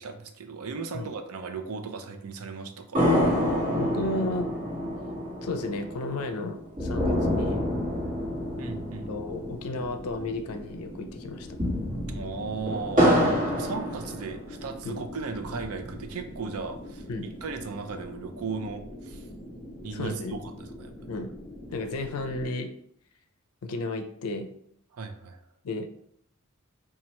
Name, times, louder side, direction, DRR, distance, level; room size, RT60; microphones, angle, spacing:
voice 1, 0.0-3.2 8.6-9.1 12.1-13.2 13.5-17.0 17.4-19.3 19.8-20.9 24.9-25.4, right 4 dB, 75° right, 6 dB, 0.5 m, -36 dB
sound 1, 2.9-10.5 10.8-10.9 11.4-14.7 15.2-16.2, equal, 35° right, 1.4 m, -28 dB
voice 2, 3.8-4.5 5.4-7.7 9.1-11.5 14.8-15.0 17.1-17.3 19.9-20.4 21.1-21.3 21.7-22.7 23.6-24.5 25.6-25.9, left 2 dB, 80° left, 6 dB, 0.5 m, -33 dB
sound 2, 7.1-22.5, left 1 dB, 15° left, 0.5 m, -44 dB
2.9 x 2.4 x 4.2 m, 0.71 s
head